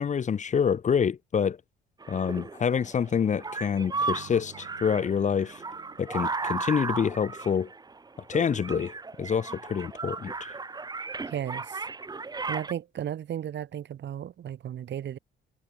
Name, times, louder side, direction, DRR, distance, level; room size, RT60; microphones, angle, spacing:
voice 1, 0.0-1.6 2.1-5.6 6.0-7.7 8.3-8.9 9.2-10.3, left 7 dB, 40° left, 0.7 m, -27 dB
sound 1, 2.0-12.7, right 4 dB, 20° right, 0.8 m, -35 dB
sound 2, 3.9-6.8, right 14 dB, 85° right, 4.9 m, -51 dB
voice 2, 11.3-11.8 12.5-15.2, right 10 dB, 65° right, 1.8 m, -34 dB
cardioid pair, 90°, 20 cm